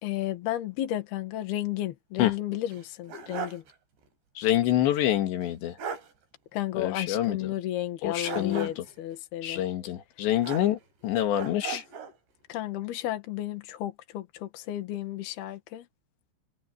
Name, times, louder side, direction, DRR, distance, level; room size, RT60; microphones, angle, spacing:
voice 1, 0.0-3.6 6.5-9.6 11.7-11.8 12.5-15.9, left 13 dB, 70° left, 3.6 m, -33 dB
sound 1, 2.7-3.7 4.0-4.1 5.4-5.5 5.8-6.1 8.2-9.0 10.4-11.0 11.3-12.2, right 7 dB, 80° right, 6.5 m, -38 dB
voice 2, 4.4-5.8 6.8-7.5 8.0-8.9 9.4-11.8, left 12 dB, 90° left, 4.2 m, -27 dB
omnidirectional pair, 4.9 m